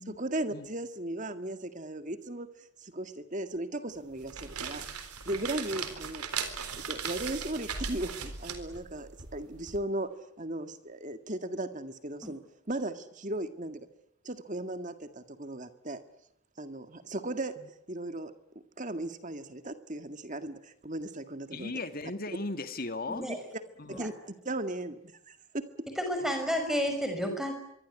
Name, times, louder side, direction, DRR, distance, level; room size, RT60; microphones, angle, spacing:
voice 1, 0.1-4.9 5.3-6.2 6.8-12.4 12.7-13.9 14.2-16.0 16.6-18.3 18.8-21.8 23.3-23.4 23.9-25.0 25.3-25.9, right 1 dB, 35° right, 9 dB, 1.9 m, -37 dB
sound 1, 4.1-9.8, right 6 dB, 90° right, 4.0 m, -38 dB
voice 2, 21.5-23.3 23.8-24.0 26.2-26.3, left 2 dB, 40° left, 9 dB, 2.1 m, -37 dB
voice 3, 26.0-27.5, equal, ahead, 5 dB, 6.0 m, -30 dB
25.5 x 23.5 x 9.6 m, 0.76 s
head